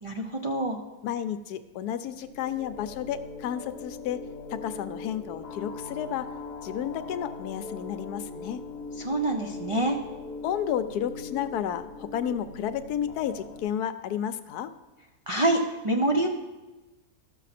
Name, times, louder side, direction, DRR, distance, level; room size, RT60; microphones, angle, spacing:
voice 1, 0.0-0.8 9.0-10.0 15.3-16.3, right 1 dB, 55° right, 1 dB, 0.3 m, -26 dB
voice 2, 1.0-4.2 4.5-6.3 6.6-8.6 10.4-14.7, left 9 dB, 80° left, 11 dB, 1.1 m, -32 dB
sound 1, 2.0-13.6, left 4 dB, 55° left, 0.8 m, -41 dB
13.5 x 6.4 x 4.2 m, 1.1 s
omnidirectional pair, 1.7 m